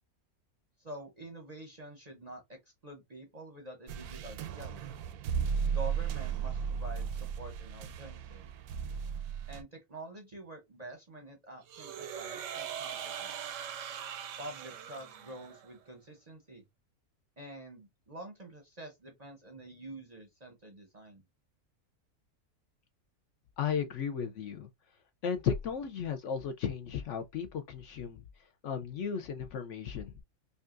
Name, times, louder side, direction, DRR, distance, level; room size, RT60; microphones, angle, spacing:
voice 1, 0.8-4.8 5.7-8.5 9.5-13.3 14.4-16.6 17.4-21.2, right 1 dB, 35° right, 0.7 m, -47 dB
sound 1, 3.9-9.6, right 7 dB, 90° right, 1.1 m, -35 dB
sound 2, 11.7-15.7, right 9 dB, 70° right, 0.8 m, -41 dB
voice 2, 23.6-24.7 25.2-28.2 28.6-30.1, left 7 dB, 65° left, 0.8 m, -34 dB
5.3 x 2.4 x 2.5 m
omnidirectional pair, 1.5 m